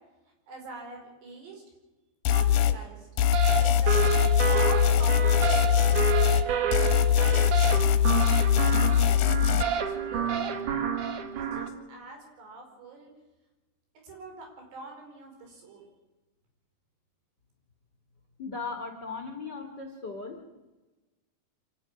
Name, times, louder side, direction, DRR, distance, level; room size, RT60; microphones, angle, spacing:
voice 1, 0.5-1.6 2.3-3.1 3.6-3.9 4.3-6.0 6.3-7.6 8.1-9.0 9.6-10.6 11.3-13.1 14.0-15.9, right 2 dB, 80° right, 2 dB, 6.8 m, -43 dB
sound 1, 2.3-2.8 3.2-6.5 6.7-9.6, left 10 dB, 70° left, 2.4 m, -22 dB
sound 2, 3.3-11.7, right 8 dB, 60° right, 2.6 m, -29 dB
voice 2, 18.4-20.4, left 4 dB, 45° left, 3 dB, 1.5 m, -37 dB
25.5 x 12.0 x 9.8 m, 1.1 s
omnidirectional pair, 4.8 m